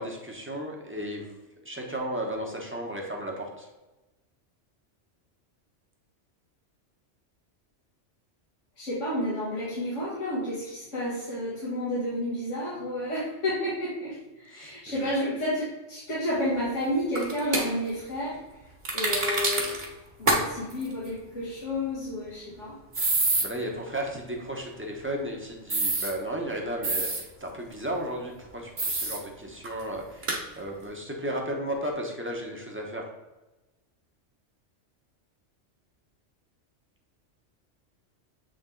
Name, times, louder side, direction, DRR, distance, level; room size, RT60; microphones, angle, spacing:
voice 1, 0.0-1.4 1.6-3.7 14.5-15.1 23.4-33.1, right 1 dB, 10° right, -1 dB, 1.0 m, -34 dB
voice 2, 8.8-18.4 18.9-19.8 20.2-22.7, left 1 dB, 85° left, -9 dB, 2.2 m, -31 dB
sound 1, 17.1-17.6 18.8-19.8 20.3-20.4 20.7-20.8 22.9-23.4 25.7-26.1 26.8-27.2 28.8-29.2 29.6-29.7 30.2-30.4, right 2 dB, 40° right, 1.3 m, -26 dB
7.8 x 3.4 x 3.9 m, 1.1 s
omnidirectional pair, 1.2 m